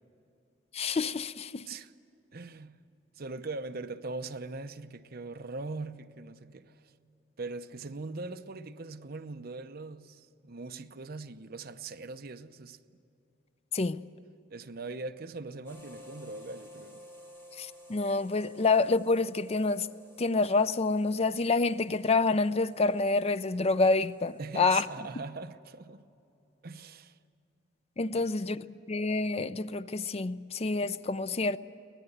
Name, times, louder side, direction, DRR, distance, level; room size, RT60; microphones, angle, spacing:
voice 1, 0.7-1.6 13.7-14.0 17.6-19.9 20.2-24.9 28.0-31.6, left 3 dB, 35° left, 0.5 m, -27 dB
voice 2, 2.3-2.8 3.2-6.9 7.4-13.0 14.5-17.0 24.4-26.0 26.6-27.2 28.1-28.3, right 3 dB, 55° right, 0.8 m, -41 dB
sound 1, 15.6-24.9, left 1 dB, 15° left, 5.1 m, -54 dB
24.0 x 19.0 x 8.0 m
head